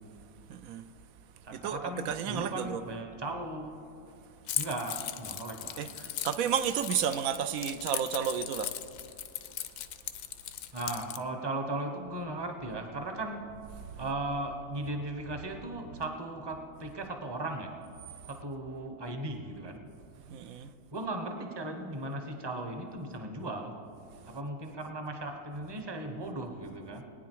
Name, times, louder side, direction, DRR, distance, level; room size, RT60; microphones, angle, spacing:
voice 1, 0.5-0.8 1.5-2.8 5.8-8.7 13.8-14.0 20.3-20.7, right 8 dB, 70° right, 0.9 m, -32 dB
voice 2, 1.5-3.8 4.6-5.8 10.7-13.4 14.0-17.8 18.3-19.8 20.5-20.6 20.9-23.8 24.3-27.0, right 2 dB, 20° right, 0.9 m, -37 dB
Keys jangling, 4.5-11.2, left 11 dB, 80° left, 1.1 m, -38 dB
19.0 x 9.6 x 4.6 m
omnidirectional pair, 1.7 m